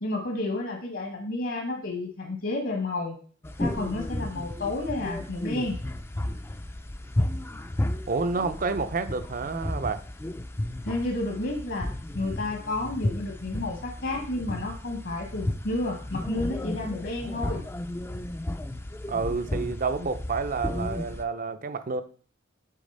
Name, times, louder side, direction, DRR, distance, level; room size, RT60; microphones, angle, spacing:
voice 1, 0.0-3.2 3.6-5.8 10.8-11.9 12.1-17.6, left 2 dB, 65° left, 1 dB, 1.3 m, -31 dB
sound 1, 3.4-21.2, left 1 dB, 10° left, 0.4 m, -33 dB
voice 2, 8.1-10.0 19.1-22.0, right 4 dB, 45° right, 11 dB, 0.5 m, -29 dB
8.3 x 3.6 x 5.4 m, 0.43 s
head